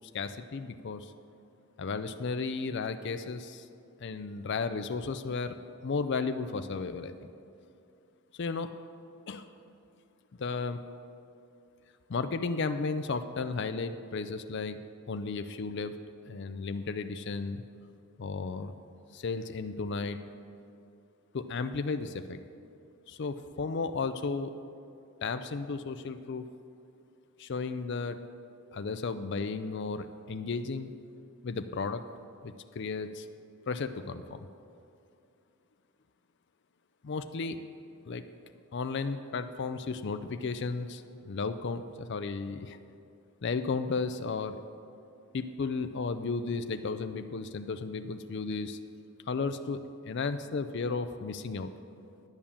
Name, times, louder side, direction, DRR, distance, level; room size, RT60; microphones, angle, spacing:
voice 1, 0.1-1.1 1.8-3.7 4.0-5.5 5.8-7.3 8.4-8.7 9.3-9.5 10.4-10.8 12.1-14.8 15.1-15.9 16.3-17.6 18.2-18.8 19.1-20.2 21.3-22.4 23.1-24.5 25.2-26.5 27.4-28.2 28.7-30.9 31.4-32.0 32.4-33.3 33.7-34.4 37.0-37.6 38.0-38.2 38.7-42.8 43.4-44.6 45.3-48.8 49.3-51.7, left 4 dB, 50° left, 9 dB, 0.4 m, -34 dB
11.0 x 8.7 x 7.0 m, 2.5 s
head